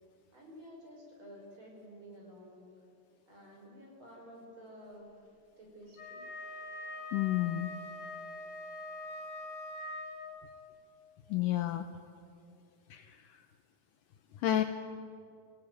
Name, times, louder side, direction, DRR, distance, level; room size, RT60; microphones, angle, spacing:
voice 1, 0.3-2.7 3.3-5.1 5.6-6.2, equal, 30° right, -1 dB, 5.4 m, -52 dB
Wind instrument woodwind instrument, 5.9-10.5, left 2 dB, 45° left, 8.2 m, -43 dB
voice 2, 7.1-7.7 11.3-11.8 12.9-13.2 14.4-14.6, left 13 dB, 90° left, 7 dB, 1.8 m, -30 dB
26.5 x 16.5 x 9.2 m, 2.5 s
omnidirectional pair, 4.8 m